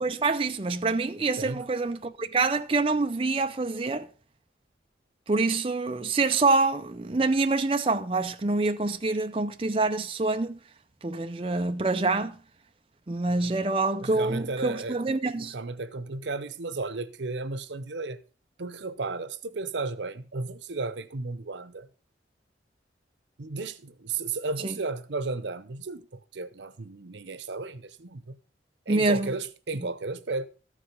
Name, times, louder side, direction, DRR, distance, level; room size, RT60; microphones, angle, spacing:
voice 1, 0.0-4.1 5.3-10.6 11.0-12.4 13.1-15.5 24.6-24.7 28.9-29.3, right 3 dB, 30° right, 0.5 m, -26 dB
voice 2, 14.0-15.0 15.4-18.2 18.6-21.9 23.4-28.4 28.9-30.5, right 3 dB, 90° right, 0.8 m, -34 dB
13.5 x 4.9 x 5.3 m
head